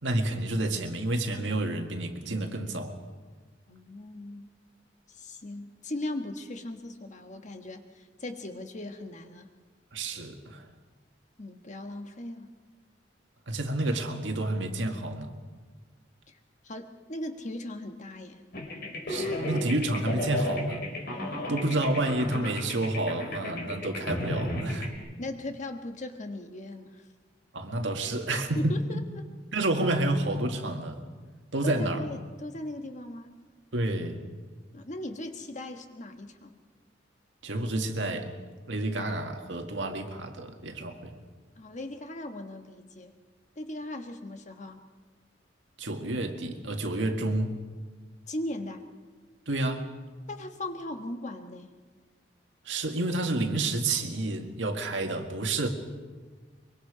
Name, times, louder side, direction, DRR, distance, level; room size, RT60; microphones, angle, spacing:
voice 1, 0.0-3.0 9.9-10.7 13.5-15.3 19.1-20.9 21.5-24.9 27.5-28.8 29.5-31.0 31.5-32.0 33.7-34.2 37.4-38.3 38.7-41.2 45.8-47.6 49.5-49.9 52.7-55.7, right 2 dB, 80° right, 4 dB, 1.9 m, -29 dB
voice 2, 3.7-4.5 5.1-9.5 11.4-12.5 16.3-16.4 16.6-18.4 25.2-27.1 28.5-29.2 31.6-33.4 34.7-36.6 41.6-43.1 43.6-44.8 48.3-48.8 50.3-51.7, left 1 dB, 40° left, 6 dB, 1.4 m, -38 dB
sound 1, 18.5-24.9, left 1 dB, 55° left, 4.1 m, -33 dB
23.5 x 23.5 x 5.0 m, 1.4 s
head